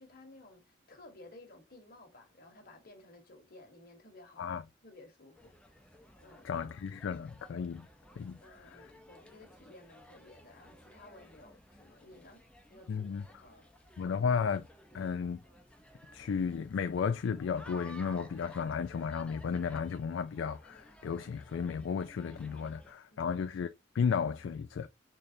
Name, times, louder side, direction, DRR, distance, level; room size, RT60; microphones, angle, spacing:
voice 1, 0.0-5.5 6.2-6.5 8.4-13.7 14.9-15.1 23.1-23.4, left 2 dB, 55° left, 1.3 m, -56 dB
sound 1, 5.3-22.9, equal, 5° left, 0.6 m, -57 dB
voice 2, 6.4-7.9 8.2-8.4 8.6-8.8 12.9-13.2 14.0-14.7 14.9-15.4 16.1-23.7 23.9-24.9, left 6 dB, 80° left, 0.3 m, -33 dB
4.0 x 3.2 x 2.7 m
head